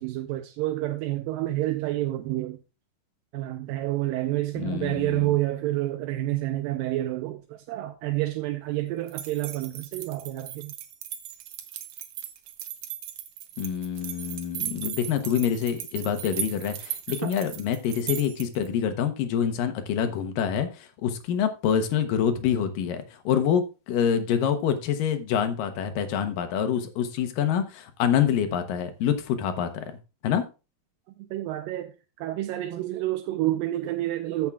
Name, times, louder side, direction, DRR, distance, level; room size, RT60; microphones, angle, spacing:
voice 1, 0.0-2.6 3.3-10.7 17.2-17.3 31.2-34.5, right 16 dB, 90° right, 2.4 m, -29 dB
voice 2, 4.6-5.4 13.6-29.9 30.2-30.5, left 8 dB, 80° left, 2.7 m, -26 dB
sound 1, 9.1-18.7, right 10 dB, 70° right, 2.3 m, -37 dB
14.0 x 7.4 x 2.4 m
omnidirectional pair, 4.0 m